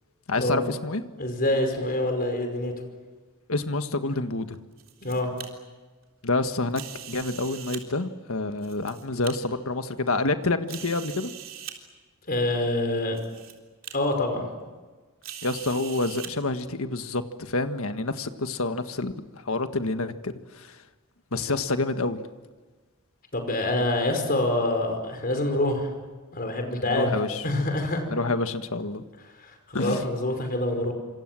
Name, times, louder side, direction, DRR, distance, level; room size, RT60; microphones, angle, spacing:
voice 1, 0.3-1.0 3.5-4.6 6.2-6.8 7.1-11.3 15.4-20.8 21.3-22.2 26.9-27.4 28.1-29.0 29.7-30.0, left 2 dB, 75° left, 8 dB, 1.6 m, -28 dB
voice 2, 1.2-2.7 5.0-5.3 12.3-13.2 13.9-14.5 23.3-25.9 26.3-27.1 27.4-28.0 29.4-30.9, left 1 dB, 45° left, 5 dB, 5.2 m, -26 dB
sound 1, 4.5-5.5 6.7-7.8 8.5-9.3 10.0-10.1 10.7-11.8 12.7-12.8 13.1-13.5 13.8-13.9 15.2-16.3, right 10 dB, 60° right, 3.7 m, -41 dB
27.0 x 26.5 x 7.7 m, 1.4 s
head